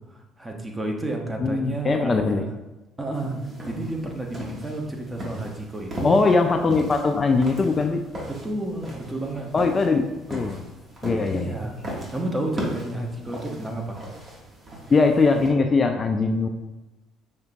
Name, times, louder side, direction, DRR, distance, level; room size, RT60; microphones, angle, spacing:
voice 1, 0.1-2.5 3.0-3.3 3.6-6.1 8.3-9.5 11.3-11.8 12.1-14.0, right 2 dB, 15° right, 1 dB, 1.0 m, -31 dB
voice 2, 1.4-2.4 6.0-8.1 9.5-10.6 11.0-11.5 14.9-16.5, left 4 dB, 35° left, 5 dB, 0.4 m, -21 dB
sound 1, 3.1-15.5, right 1 dB, 40° right, 1.4 m, -38 dB
5.6 x 3.3 x 2.8 m, 1.1 s
figure-of-eight pair, 55°, 0 cm